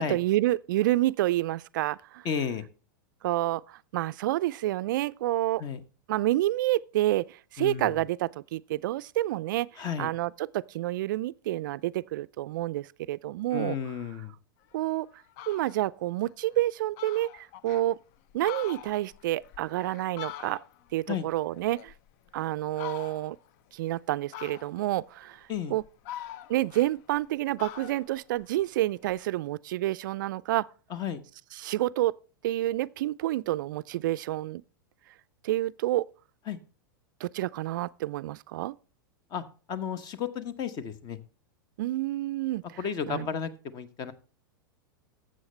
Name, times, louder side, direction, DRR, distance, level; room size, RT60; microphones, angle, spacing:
voice 1, 0.0-2.3 3.2-5.6 6.1-9.7 10.0-13.8 14.7-15.1 15.5-18.0 18.3-20.6 20.9-21.9 22.3-23.4 23.7-25.8 26.5-30.7 31.5-32.1 32.4-34.6 35.4-36.1 37.2-38.8 41.8-42.6 43.1-43.3, right 15 dB, 60° right, 0.4 m, -29 dB
voice 2, 2.2-2.6 5.6-5.8 7.6-7.9 9.8-10.1 13.5-14.3 21.1-21.3 25.5-25.7 30.9-31.2 36.5-36.6 39.3-41.2 42.8-44.1, left 7 dB, 35° left, 1.1 m, -33 dB
Fowl, 14.7-14.8 15.2-15.8 16.3-16.4 16.6-16.7 17.0-17.9 18.3-20.9 21.3-22.3 22.7-23.4 24.3-25.0 25.5-27.3 27.6-29.2, left 12 dB, 50° left, 0.5 m, -43 dB
12.5 x 7.7 x 3.3 m
hypercardioid pair, 100°, 12 cm